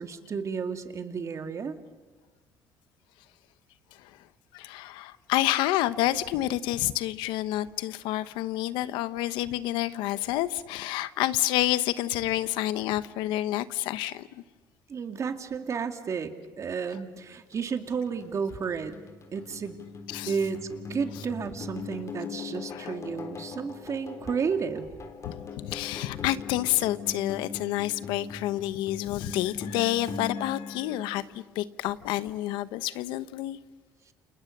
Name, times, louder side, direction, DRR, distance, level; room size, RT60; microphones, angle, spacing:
voice 1, 0.0-1.8 14.9-18.9 19.3-19.8 20.3-24.8, right 6 dB, 40° right, 7 dB, 2.3 m, -32 dB
voice 2, 4.5-14.4 20.1-20.3 22.7-22.9 25.2-33.6, left 15 dB, 90° left, 14 dB, 1.0 m, -29 dB
sound 1, 17.5-31.7, left 5 dB, 40° left, 4.0 m, -41 dB
29.5 x 28.5 x 6.7 m, 1.3 s
cardioid pair, 105°, 8 cm